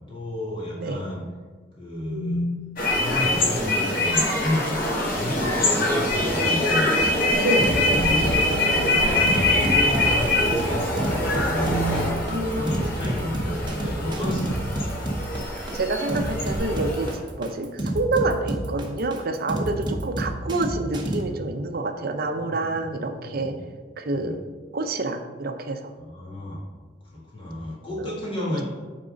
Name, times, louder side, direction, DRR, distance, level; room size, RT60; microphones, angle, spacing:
voice 1, 0.1-1.2 1.8-2.5 2.8-4.7 5.1-14.7 22.2-22.9 23.2-23.6 24.1-24.4 26.0-26.6 27.0-28.6, left 1 dB, 30° left, -6 dB, 1.9 m, -32 dB
sound 1, 2.0-2.5 3.8-4.3 6.5-10.7 11.4-12.1, right 3 dB, 85° left, 1.5 m, -35 dB
sound 2, 2.8-17.2, left 1 dB, 50° left, 1.5 m, -24 dB
sound 3, 7.6-21.2, right 1 dB, 25° right, 0.9 m, -29 dB
voice 2, 12.3-12.9 15.5-23.6 24.0-24.4 24.7-25.9 28.0-28.2, right 2 dB, 55° right, 6 dB, 0.6 m, -27 dB
8.8 x 3.7 x 5.2 m, 1.4 s
head